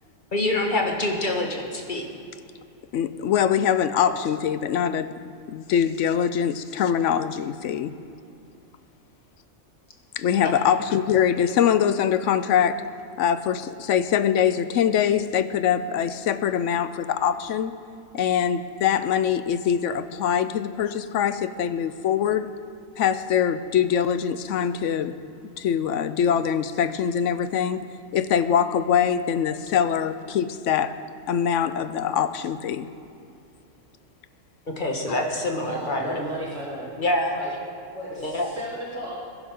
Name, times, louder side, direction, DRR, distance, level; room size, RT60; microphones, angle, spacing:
voice 1, 0.3-2.1 10.4-10.7 34.8-36.2 37.0-37.3 38.2-38.6, left 1 dB, 40° left, 1 dB, 1.7 m, -26 dB
voice 2, 2.9-5.1 5.5-7.9 10.2-12.8 13.2-17.7 18.1-22.5 23.0-25.2 25.6-27.8 28.1-30.9 31.3-32.9, left 8 dB, 75° left, 12 dB, 1.0 m, -23 dB
voice 3, 35.6-36.9 37.3-37.5 37.9-39.2, right 1 dB, 80° right, -9 dB, 3.9 m, -34 dB
21.5 x 11.0 x 3.7 m, 2.7 s
omnidirectional pair, 1.3 m